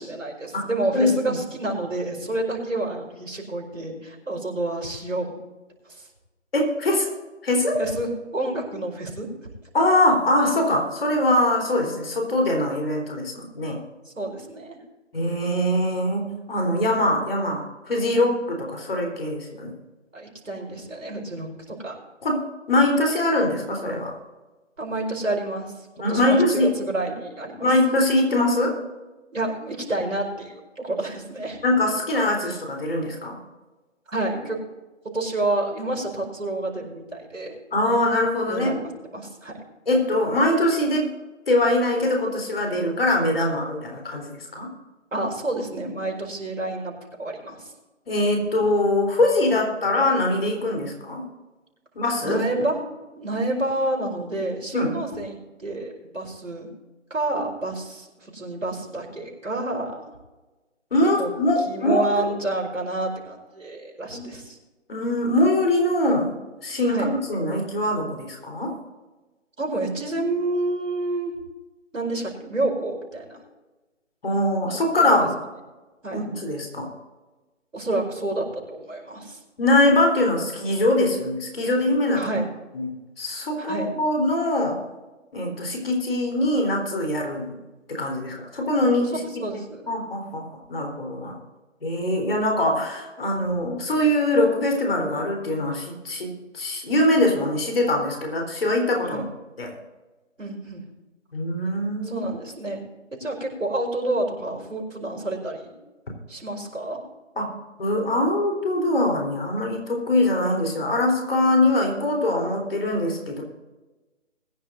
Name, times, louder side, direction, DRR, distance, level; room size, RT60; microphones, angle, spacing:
voice 1, 0.0-5.3 5.9-6.1 7.8-9.3 14.0-14.8 20.1-22.0 24.8-25.7 26.1-27.7 29.3-31.6 34.1-34.6 35.1-37.5 38.5-39.6 45.1-46.9 47.2-47.6 52.2-52.7 53.1-55.3 55.6-56.7 57.1-60.1 61.2-61.3 61.7-64.6 66.9-67.1 69.6-71.3 71.9-73.4 75.0-75.1 76.0-76.3 77.7-79.4 82.1-82.5 83.6-83.9 89.4-89.9 99.0-99.3 100.4-100.8 102.1-102.8 103.1-105.7 106.3-107.0, right 2 dB, 80° right, -1 dB, 4.9 m, -29 dB
voice 2, 0.9-1.3 6.5-7.1 7.4-7.8 9.7-13.8 15.1-19.7 22.2-22.4 22.7-24.1 26.0-26.7 27.6-28.8 31.6-33.4 37.7-38.8 39.9-41.1 41.5-44.7 48.1-51.3 52.0-52.4 54.7-55.0 60.9-62.3 64.1-64.2 64.9-66.3 66.6-68.8 74.2-75.4 76.1-76.9 79.6-82.3 82.7-84.8 85.3-87.5 87.9-89.2 89.9-90.4 90.7-91.4 91.8-99.2 99.6-99.7 101.3-102.2 107.4-107.5 107.8-113.4, left 1 dB, 50° left, 1 dB, 4.0 m, -22 dB
21.5 x 10.5 x 2.7 m, 1.2 s
figure-of-eight pair, 160°, 38 cm